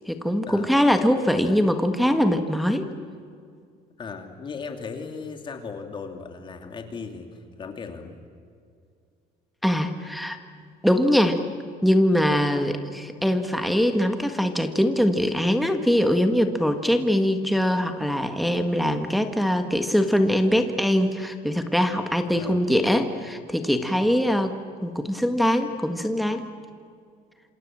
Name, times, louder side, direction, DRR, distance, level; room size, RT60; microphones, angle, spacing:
voice 1, 0.1-2.9 9.6-10.4 10.8-11.4 11.8-24.6 24.8-26.5, equal, ahead, 5 dB, 1.7 m, -22 dB
voice 2, 4.0-8.2 22.4-22.6, left 5 dB, 30° left, 5 dB, 2.7 m, -37 dB
27.5 x 27.0 x 7.5 m, 2.3 s
cardioid pair, 155°, 17 cm